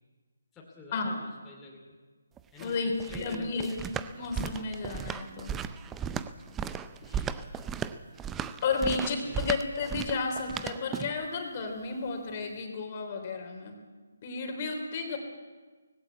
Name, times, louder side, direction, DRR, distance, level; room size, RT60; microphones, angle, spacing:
voice 1, 0.5-2.0 2.5-3.9 7.0-7.7 8.8-9.5, left 3 dB, 10° left, -4 dB, 2.7 m, -48 dB
sound 1, 2.4-11.3, right 8 dB, 10° right, 0.5 m, -36 dB
voice 2, 2.6-5.5 8.6-13.8 14.2-15.2, left 4 dB, 35° left, 4 dB, 3.4 m, -32 dB
19.0 x 16.5 x 8.4 m, 1.4 s
figure-of-eight pair, 150°, 0 cm